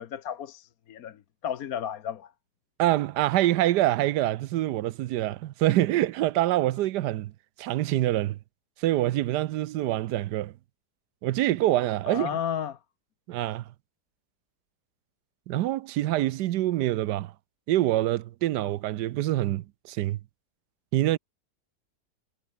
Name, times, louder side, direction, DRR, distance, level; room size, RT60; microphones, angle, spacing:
voice 1, 0.0-2.3 12.1-12.8, left 9 dB, 65° left, 1.3 m, -33 dB
voice 2, 2.8-7.3 7.6-8.4 8.8-10.5 11.2-12.3 13.3-13.6 15.5-17.3 17.7-20.2 20.9-21.2, right 15 dB, 90° right, 1.2 m, -25 dB
omnidirectional pair, 1.8 m